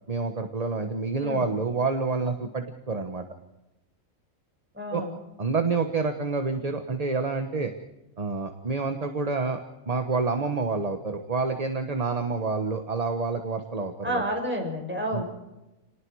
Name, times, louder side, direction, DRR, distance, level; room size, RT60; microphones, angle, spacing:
voice 1, 0.1-3.2 4.9-5.0 5.4-7.7 8.2-9.6 9.9-14.2 15.1-15.2, right 4 dB, 30° right, 6 dB, 1.3 m, -28 dB
voice 2, 4.7-5.1 14.0-15.2, equal, 10° right, 0 dB, 6.3 m, -30 dB
28.5 x 19.5 x 4.8 m, 1.0 s
omnidirectional pair, 1.4 m